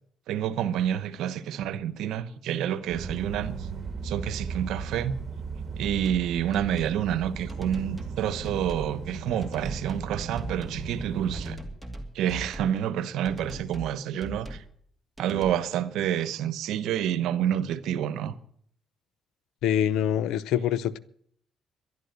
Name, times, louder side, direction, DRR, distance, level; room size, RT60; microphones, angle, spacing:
voice 1, 0.3-3.7 4.0-5.1 5.8-11.6 12.1-14.6 15.2-18.3, right 10 dB, 85° right, 0.9 m, -28 dB
sound 1, 2.9-11.5, right 5 dB, 50° right, 1.5 m, -36 dB
sound 2, 5.8-6.3 6.5-7.0 7.5-8.2 8.4-8.9 9.4-10.1 10.4-10.8 11.3-12.7 13.2-13.9 14.2-14.7 15.2-15.5, right 1 dB, ahead, 2.4 m, -40 dB
voice 2, 19.6-21.0, left 10 dB, 90° left, 0.6 m, -25 dB
11.5 x 11.0 x 8.1 m
cardioid pair, 90°, 0 cm